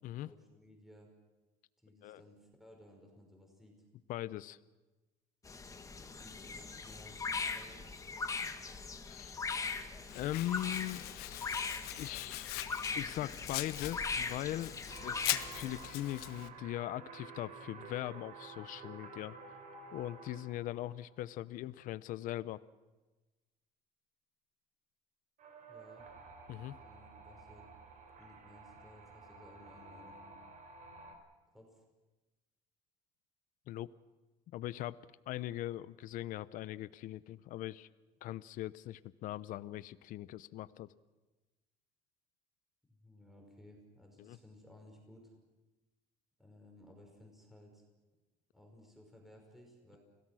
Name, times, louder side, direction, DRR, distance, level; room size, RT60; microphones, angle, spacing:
voice 1, 0.2-1.1 1.8-3.7 5.9-7.9 25.7-26.1 26.8-27.7 28.2-30.4 31.5-31.8 42.9-45.3 46.4-47.8 48.5-50.0, left 1 dB, ahead, 1 dB, 5.5 m, -58 dB
voice 2, 4.1-4.6 9.0-9.4 10.1-11.1 12.0-12.5 12.9-14.8 15.0-19.4 19.9-22.6 26.5-26.8 33.7-33.9 34.5-35.0 35.3-37.9 38.2-40.9 44.2-44.4, left 14 dB, 60° left, 17 dB, 0.7 m, -40 dB
sound 1, 5.4-15.9, left 4 dB, 20° left, 1.5 m, -40 dB
Domestic sounds home sounds, 10.1-16.5, left 16 dB, 80° left, 1.1 m, -42 dB
sound 2, 14.9-21.1 25.4-31.2, right 4 dB, 55° right, 3.9 m, -52 dB
29.5 x 17.5 x 6.3 m, 1.1 s
cardioid pair, 125°, 16 cm